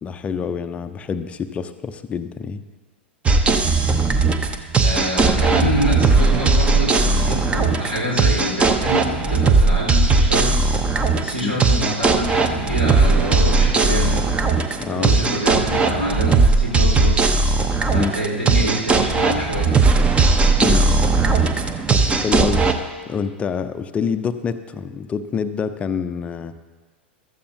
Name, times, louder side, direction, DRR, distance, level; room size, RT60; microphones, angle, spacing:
voice 1, 0.0-2.6 11.4-11.5 14.8-15.1 17.9-18.1 20.6-20.9 21.9-22.6 23.1-26.5, left 6 dB, 20° left, 10 dB, 0.5 m, -26 dB
sound 1, 3.3-22.7, right 3 dB, 20° right, 0.8 m, -18 dB
voice 2, 4.8-10.8 11.1-14.3 14.9-17.3 17.9-19.7, equal, 85° right, -2 dB, 4.0 m, -26 dB
15.0 x 13.0 x 2.7 m, 1.4 s
figure-of-eight pair, 95°, 6 cm